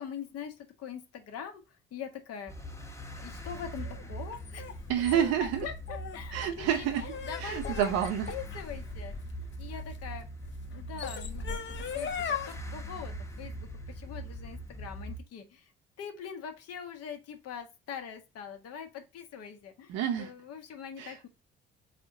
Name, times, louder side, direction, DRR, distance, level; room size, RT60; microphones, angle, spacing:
voice 1, 0.0-2.5 3.2-4.9 5.4-6.9 7.3-7.9 8.3-9.2 9.6-10.3 10.7-15.7 16.0-21.3, left 7 dB, 55° left, 1.1 m, -43 dB
Dark Ambience, 2.5-15.2, right 1 dB, 10° left, 1.0 m, -42 dB
sound 1, 3.8-10.0 10.7-12.5, left 7 dB, 40° left, 0.8 m, -38 dB
voice 2, 4.9-5.7 6.3-7.1 7.4-8.3 19.9-20.3 21.0-21.2, right 9 dB, 60° right, 0.6 m, -29 dB
4.2 x 3.7 x 2.5 m
hypercardioid pair, 50°, 29 cm